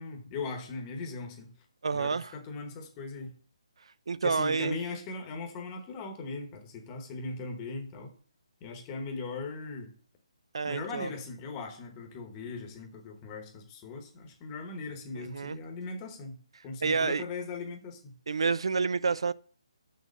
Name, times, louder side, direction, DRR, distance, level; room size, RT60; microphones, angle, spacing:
voice 1, 0.0-1.5 1.9-3.3 4.2-8.1 8.6-9.9 10.6-16.4 16.6-18.1, left 3 dB, 10° left, 1.0 m, -39 dB
voice 2, 1.8-2.3 4.1-4.8 10.5-11.1 15.2-15.6 16.8-17.2 18.3-19.3, right 5 dB, 55° right, 0.3 m, -29 dB
6.6 x 6.3 x 6.3 m
hypercardioid pair, 180°, 3 cm